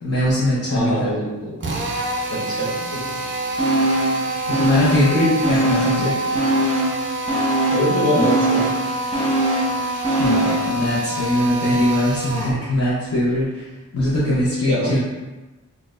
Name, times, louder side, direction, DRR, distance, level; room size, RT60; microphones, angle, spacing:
voice 1, 0.0-1.1 4.5-6.4 10.2-15.0, left 1 dB, 50° left, -9 dB, 0.8 m, -21 dB
voice 2, 0.7-1.5 2.3-2.7 5.1-5.3 7.7-8.7 9.4-9.7 14.7-15.0, equal, 65° left, -9 dB, 1.5 m, -23 dB
Drill, 1.6-12.6, right 1 dB, 40° right, 0.5 m, -26 dB
sound 1, 3.6-4.2 4.5-6.1 6.3-10.7 11.1-11.2, right 1 dB, 20° right, 0.8 m, -22 dB
4.0 x 2.3 x 2.5 m, 1.1 s
wide cardioid pair, 80°, 32 cm